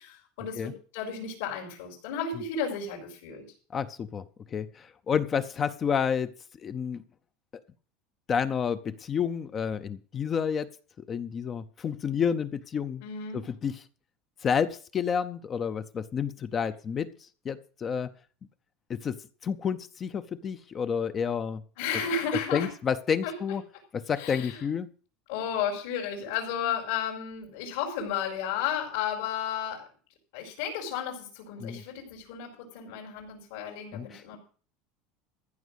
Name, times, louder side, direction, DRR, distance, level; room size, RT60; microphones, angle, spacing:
voice 1, 0.0-3.4 13.0-13.4 21.8-22.7 23.2-23.3 24.2-24.7 25.3-29.8 30.3-34.4, left 7 dB, 75° left, -4 dB, 4.7 m, -33 dB
voice 2, 3.7-4.2 4.5-6.3 6.6-7.0 8.3-10.7 11.1-13.0 13.3-13.8 14.4-17.1 17.4-18.1 18.9-19.2 19.4-21.6 22.5-23.6 23.9-24.9 31.6-31.8 33.9-34.4, left 7 dB, 20° left, 12 dB, 0.6 m, -30 dB
14.5 x 6.1 x 8.2 m, 0.40 s
cardioid pair, 175°, 0 cm